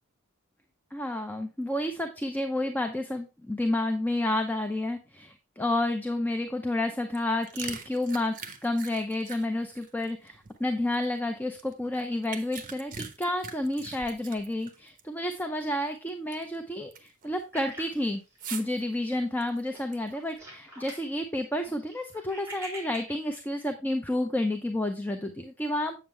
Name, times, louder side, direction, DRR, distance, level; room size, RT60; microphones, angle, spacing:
voice 1, 0.9-18.2 18.5-26.0, left 1 dB, 10° left, 6 dB, 0.6 m, -30 dB
sound 1, 7.1-11.0 11.5-15.0 15.3-15.4 15.9-16.6 16.9-17.2 18.4-18.8 19.4-20.3, right 6 dB, 40° right, 1.0 m, -42 dB
sound 2, 17.5-18.9 19.2-19.4 19.7-21.1 21.4-23.4, right 1 dB, 15° right, 3.7 m, -45 dB
7.8 x 7.2 x 3.3 m, 0.29 s
head